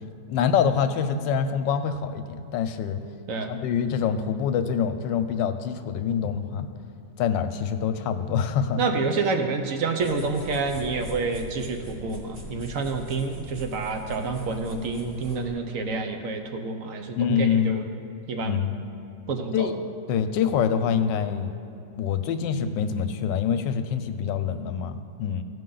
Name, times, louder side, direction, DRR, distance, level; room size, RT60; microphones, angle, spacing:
voice 1, 0.3-3.0 3.5-6.7 7.2-8.8 17.2-17.9 18.4-18.8 19.5-19.7 20.1-21.5 21.9-25.4, left 7 dB, 90° left, 9 dB, 1.3 m, -25 dB
voice 2, 8.8-17.8 18.3-18.6 19.3-19.7, right 4 dB, 65° right, 4 dB, 0.9 m, -28 dB
sound 1, 10.0-15.5, left 2 dB, 30° right, 1.4 m, -41 dB
15.5 x 5.4 x 3.8 m, 2.7 s
omnidirectional pair, 1.9 m